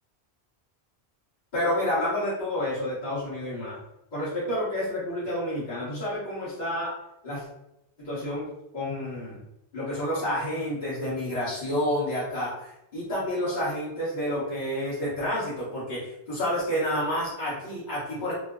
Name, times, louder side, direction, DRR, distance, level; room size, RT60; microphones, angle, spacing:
voice 1, 1.5-3.8 4.1-6.9 7.2-7.4 8.0-8.5 8.7-9.4 9.7-18.3, left 1 dB, 45° left, -10 dB, 1.1 m, -29 dB
3.0 x 2.0 x 3.6 m, 0.87 s
omnidirectional pair, 1.1 m